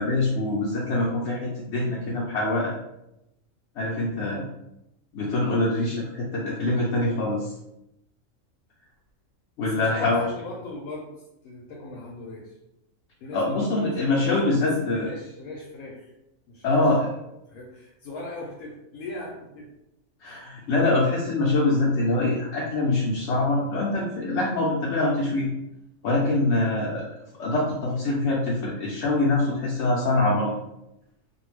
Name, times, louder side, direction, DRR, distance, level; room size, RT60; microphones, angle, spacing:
voice 1, 0.0-2.7 3.8-4.5 5.1-7.5 9.6-10.2 13.3-15.1 16.6-17.0 20.2-25.5 26.0-27.0 27.4-30.5, left 2 dB, 65° left, -5 dB, 0.8 m, -24 dB
voice 2, 9.6-11.1 11.4-12.6 13.2-16.1 16.5-16.9 17.5-19.7 20.2-20.5, left 2 dB, 85° left, -3 dB, 1.1 m, -39 dB
2.6 x 2.2 x 3.1 m, 0.87 s
omnidirectional pair, 1.5 m